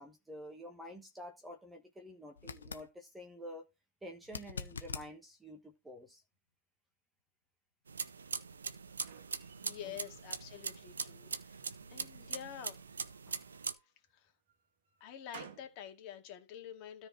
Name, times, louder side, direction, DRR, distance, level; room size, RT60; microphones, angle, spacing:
voice 1, 0.0-3.7 4.0-6.2 9.8-10.0, equal, 5° right, 1.3 m, -49 dB
sound 1, 2.4-2.9 4.2-5.1 8.1-8.2, left 5 dB, 70° left, 1.4 m, -43 dB
sound 2, 7.9-13.7, right 5 dB, 75° right, 1.2 m, -42 dB
sound 3, 8.7-10.3 10.7-11.4 12.4-13.9 14.5-15.8, right 7 dB, 50° right, 1.9 m, -57 dB
voice 2, 9.4-11.6 11.9-12.9 13.3-13.4 14.1-14.3 15.0-17.1, left 10 dB, 35° left, 2.4 m, -48 dB
13.5 x 4.6 x 4.7 m
hypercardioid pair, 130°, 0 cm